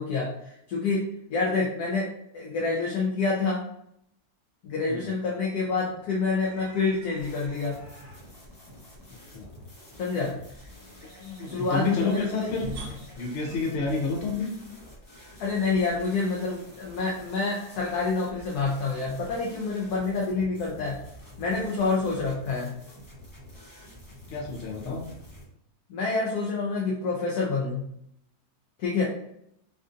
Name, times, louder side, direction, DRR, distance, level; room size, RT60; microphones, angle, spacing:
voice 1, 0.0-2.1 2.3-3.6 4.6-7.8 10.0-10.4 11.5-12.5 15.4-21.0 21.4-22.7 25.9-27.9 28.8-29.0, left 4 dB, 75° left, -4 dB, 1.2 m, -27 dB
sound 1, 5.9-14.6, right 1 dB, 55° right, 0.7 m, -47 dB
sound 2, 7.2-25.5, left 1 dB, 25° left, 0.4 m, -49 dB
voice 2, 11.2-12.7 13.2-14.5 24.3-25.0, left 4 dB, 55° left, -1 dB, 0.9 m, -29 dB
3.5 x 2.6 x 2.5 m, 0.74 s
omnidirectional pair, 1.7 m